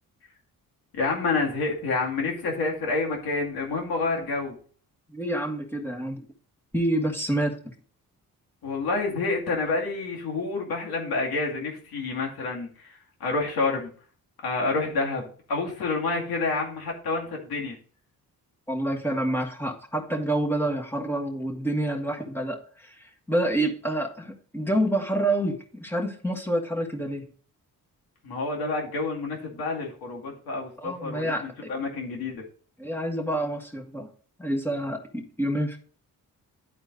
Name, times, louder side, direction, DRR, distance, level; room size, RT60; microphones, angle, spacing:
voice 1, 0.9-4.6 8.6-12.7 13.2-13.9 14.4-17.8 28.2-32.4, left 3 dB, 90° left, 0 dB, 2.3 m, -28 dB
voice 2, 5.1-6.2 6.7-7.6 18.7-27.3 30.8-31.7 32.8-34.1 34.4-35.8, right 1 dB, 5° left, 1 dB, 1.7 m, -28 dB
11.0 x 4.4 x 3.9 m, 0.43 s
cardioid pair, 85°, 36 cm